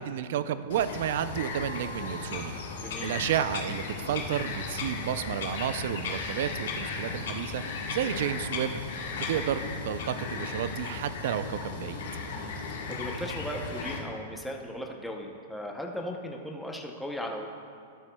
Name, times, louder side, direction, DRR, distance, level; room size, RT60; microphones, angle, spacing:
voice 1, 0.0-2.5 3.0-7.6 7.9-8.8 9.2-12.0, right 10 dB, 60° right, 12 dB, 0.5 m, -31 dB
Bird vocalization bird call bird song, 0.7-14.0, left 4 dB, 80° left, 1.4 m, -35 dB
voice 2, 2.8-3.1 12.3-12.6 12.9-17.5, equal, ahead, 0 dB, 0.7 m, -37 dB
12.5 x 12.0 x 2.3 m, 2.4 s
supercardioid pair, 155°, 0 cm